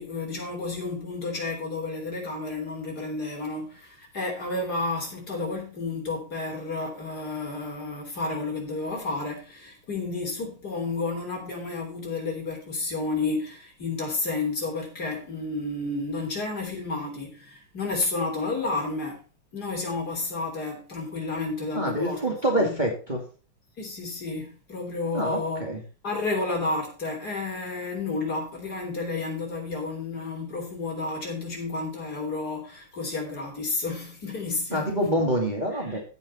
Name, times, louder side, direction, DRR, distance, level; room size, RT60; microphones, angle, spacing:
voice 1, 0.0-19.2 19.5-22.8 23.8-25.7 26.0-34.9 35.7-36.0, left 3 dB, 45° left, 4.0 m, -31 dB
voice 2, 21.7-23.2 25.1-25.8 34.7-36.0, right 1 dB, 20° right, 2.5 m, -26 dB
16.0 x 5.8 x 4.2 m
omnidirectional pair, 2.4 m